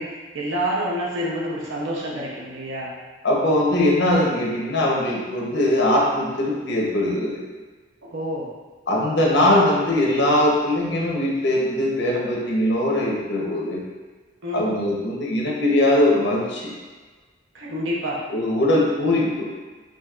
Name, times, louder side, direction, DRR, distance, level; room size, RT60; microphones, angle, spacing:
voice 1, 0.0-2.9 8.0-8.5 14.4-14.7 17.5-18.2, equal, 85° right, -4 dB, 0.7 m, -28 dB
voice 2, 3.2-7.4 8.9-13.8 14.5-16.7 18.3-19.5, left 1 dB, 65° left, -2 dB, 0.8 m, -21 dB
5.1 x 2.7 x 2.4 m, 1.4 s
head